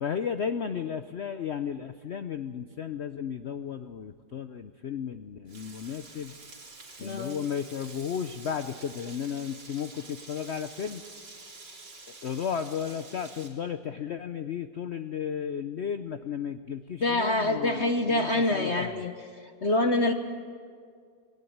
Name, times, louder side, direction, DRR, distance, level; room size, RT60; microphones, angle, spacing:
voice 1, 0.0-6.3 7.0-11.0 12.2-19.1, left 7 dB, 75° left, 10 dB, 0.6 m, -34 dB
Frying (food), 5.5-13.5, right 3 dB, 70° right, 3.8 m, -48 dB
voice 2, 7.0-7.4 17.0-19.1 19.4-20.1, left 2 dB, 45° left, 6 dB, 1.1 m, -26 dB
21.0 x 18.0 x 8.7 m, 2.1 s
omnidirectional pair, 2.0 m